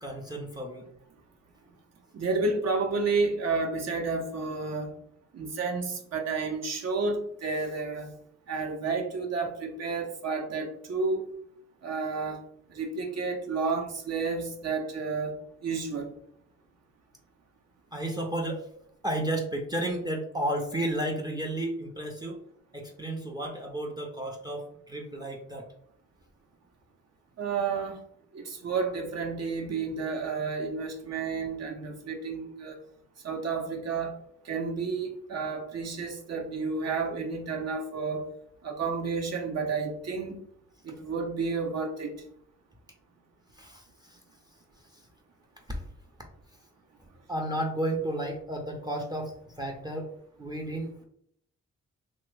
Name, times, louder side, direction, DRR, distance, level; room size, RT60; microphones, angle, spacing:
voice 1, 0.0-0.9 17.9-18.7 19.0-22.4 22.7-25.7 43.6-44.2 45.7-45.8 47.3-50.1 50.4-51.1, right 1 dB, 15° right, 2 dB, 0.5 m, -32 dB
voice 2, 2.1-4.9 5.3-8.1 8.5-11.2 11.8-12.4 12.7-16.1 27.4-28.0 28.3-32.8 33.2-34.1 34.4-38.3 38.6-40.4 40.8-42.2, right 4 dB, 60° right, 2 dB, 0.7 m, -31 dB
2.9 x 2.1 x 3.2 m, 0.67 s
supercardioid pair, 55°, 30 cm